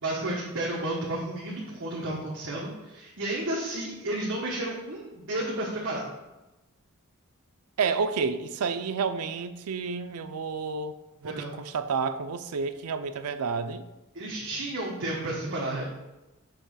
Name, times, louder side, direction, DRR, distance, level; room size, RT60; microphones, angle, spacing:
voice 1, 0.0-6.0 11.2-11.5 14.1-15.8, right 1 dB, 60° right, -4 dB, 1.1 m, -32 dB
voice 2, 7.8-10.9 11.2-13.8, right 5 dB, 80° right, 9 dB, 0.5 m, -30 dB
6.8 x 3.0 x 5.7 m, 1.0 s
head